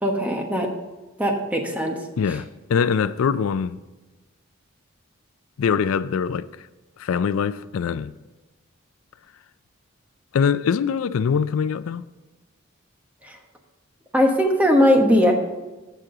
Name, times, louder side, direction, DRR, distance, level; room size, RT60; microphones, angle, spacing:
voice 1, 0.0-0.7 1.2-2.0 13.2-13.4 14.1-15.3, equal, 5° right, 1.2 m, -19 dB
voice 2, 2.2-3.8 5.6-6.5 7.0-8.1 10.3-12.1, left 6 dB, 80° left, 0.4 m, -23 dB
15.0 x 6.1 x 3.9 m
head